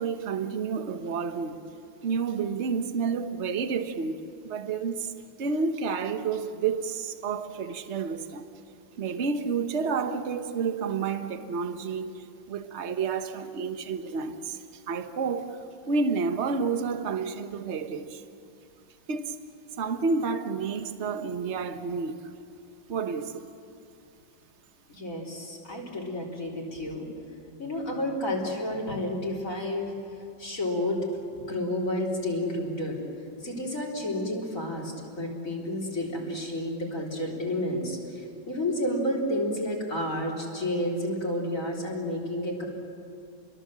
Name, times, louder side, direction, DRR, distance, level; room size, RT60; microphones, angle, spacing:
voice 1, 0.0-1.6 2.0-4.2 4.4-5.1 5.4-8.4 9.0-12.2 12.5-14.6 14.9-15.6 15.9-18.2 19.1-19.3 19.8-22.2 22.9-23.5, right 5 dB, 40° right, 1.3 m, -30 dB
voice 2, 24.9-27.1 27.5-29.9 30.4-31.1 31.3-33.0 33.4-42.6, left 1 dB, 45° left, 4.1 m, -30 dB
29.0 x 22.5 x 7.6 m
omnidirectional pair, 2.1 m